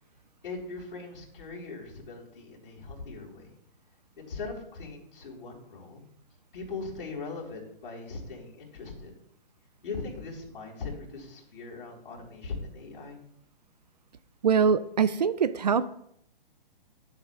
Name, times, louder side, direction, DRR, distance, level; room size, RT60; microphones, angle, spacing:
voice 1, 0.4-3.6 4.2-6.0 6.5-9.1 9.8-13.2, left 4 dB, 65° left, -2 dB, 4.0 m, -40 dB
voice 2, 14.4-15.9, right 6 dB, 45° right, 15 dB, 0.4 m, -23 dB
13.0 x 7.5 x 2.4 m, 0.72 s
hypercardioid pair, 170°, 29 cm